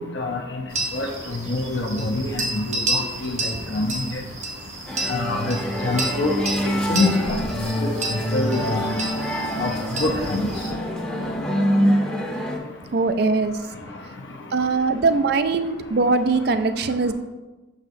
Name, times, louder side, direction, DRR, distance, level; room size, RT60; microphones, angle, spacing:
voice 1, 0.1-0.6 0.9-4.2 5.1-6.3 6.9-7.4 7.8-8.8 9.6-9.7 10.0-10.5, left 2 dB, 70° left, 0 dB, 0.7 m, -25 dB
sound 1, 0.7-10.7, right 2 dB, 35° right, 0.8 m, -31 dB
sound 2, 4.9-12.6, equal, 5° left, 0.7 m, -25 dB
voice 2, 12.9-13.6 14.5-17.1, right 3 dB, 55° right, 10 dB, 0.4 m, -21 dB
6.5 x 6.1 x 2.6 m, 1.2 s
head